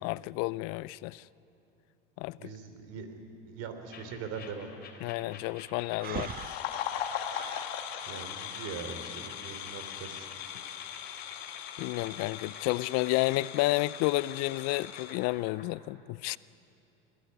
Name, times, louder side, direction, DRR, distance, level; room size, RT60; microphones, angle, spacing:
voice 1, 0.0-1.2 2.2-2.5 5.0-6.6 11.8-16.4, left 20 dB, 55° left, 0.5 m, -31 dB
voice 2, 2.4-3.1 3.5-4.7 8.1-10.3, right 6 dB, 55° right, 3.4 m, -41 dB
sound 1, 3.9-15.7, left 5 dB, 35° left, 3.3 m, -51 dB
Breathing, 6.0-7.7, right 10 dB, 30° right, 0.6 m, -40 dB
sound 2, 6.1-15.2, left 10 dB, 75° left, 1.9 m, -39 dB
24.0 x 16.5 x 9.6 m
supercardioid pair, 100°, 30 cm